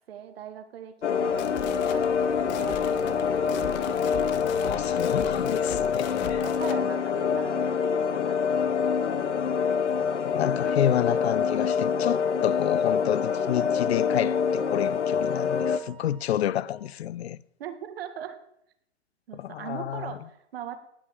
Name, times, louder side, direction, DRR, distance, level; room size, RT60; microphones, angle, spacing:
voice 1, 0.1-4.2 6.4-8.4 8.9-10.1 17.6-18.4 19.3-20.8, right 9 dB, 55° right, 2.2 m, -41 dB
sound 1, 1.0-15.8, left 6 dB, 80° left, 1.3 m, -26 dB
sound 2, 1.1-6.8, left 12 dB, 40° left, 1.0 m, -40 dB
voice 2, 4.6-6.4 10.3-17.4 19.3-20.1, left 11 dB, 60° left, 0.6 m, -29 dB
Wind instrument woodwind instrument, 13.0-16.9, right 7 dB, 5° left, 2.8 m, -54 dB
18.0 x 6.3 x 7.7 m
hypercardioid pair, 130°, 35 cm